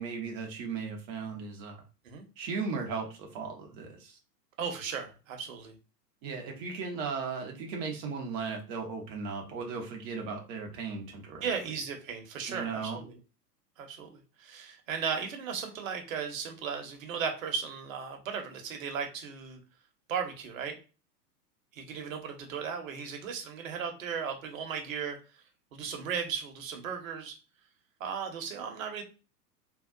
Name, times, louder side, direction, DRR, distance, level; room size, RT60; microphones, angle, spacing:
voice 1, 0.0-1.8 2.4-4.2 6.2-11.6 12.5-13.0, right 5 dB, 20° right, 2 dB, 0.6 m, -36 dB
voice 2, 4.6-5.7 11.4-13.2 13.8-19.6 20.1-20.8 21.7-25.2 25.7-27.4 28.0-29.0, right 6 dB, 55° right, 4 dB, 0.9 m, -36 dB
3.6 x 2.3 x 2.3 m, 0.33 s
figure-of-eight pair, 100°, 49 cm